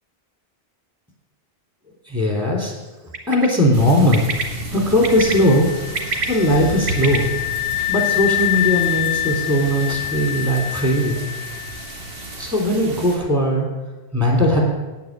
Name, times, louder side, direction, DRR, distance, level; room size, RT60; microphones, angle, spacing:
voice 1, 2.1-2.7 3.3-4.3 4.7-7.3 7.9-11.2 12.4-13.7 14.1-14.6, equal, 15° right, -1 dB, 3.2 m, -19 dB
Bird, 3.1-3.5 4.1-4.4 5.0-5.3 5.8-7.2, right 3 dB, 80° right, 1.5 m, -25 dB
sound 1, 3.7-13.2, right 2 dB, 65° right, 1.5 m, -33 dB
sound 2, 5.1-11.9, left 16 dB, 85° left, 0.8 m, -26 dB
9.3 x 9.0 x 7.5 m, 1.2 s
omnidirectional pair, 1.1 m